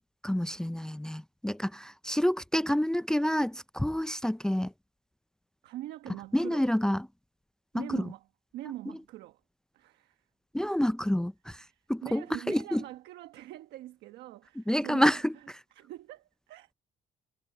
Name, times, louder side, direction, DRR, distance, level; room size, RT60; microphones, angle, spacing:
voice 1, 0.2-4.7 6.3-7.1 7.7-8.1 10.5-11.6 11.9-12.8 14.6-15.3, equal, 5° left, 0.5 m, -28 dB
voice 2, 5.6-6.7 7.7-8.2 8.5-9.4 9.7-10.2 11.6-15.5 15.7-16.7, right 15 dB, 80° right, 1.2 m, -43 dB
cardioid pair, 110°, 17 cm